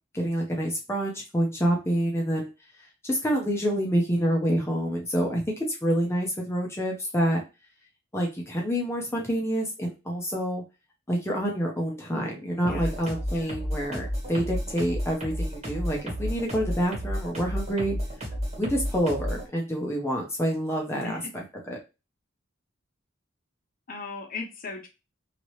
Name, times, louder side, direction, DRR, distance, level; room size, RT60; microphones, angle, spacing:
voice 1, 0.1-2.5 2.8-7.4 8.1-10.6 11.1-18.0 18.6-21.8, equal, 15° left, -1 dB, 0.7 m, -27 dB
sound 1, 12.6-19.5, equal, 35° right, 1.4 m, -32 dB
voice 2, 23.9-24.9, left 4 dB, 45° left, 0 dB, 0.8 m, -38 dB
2.9 x 2.8 x 3.1 m, 0.27 s
head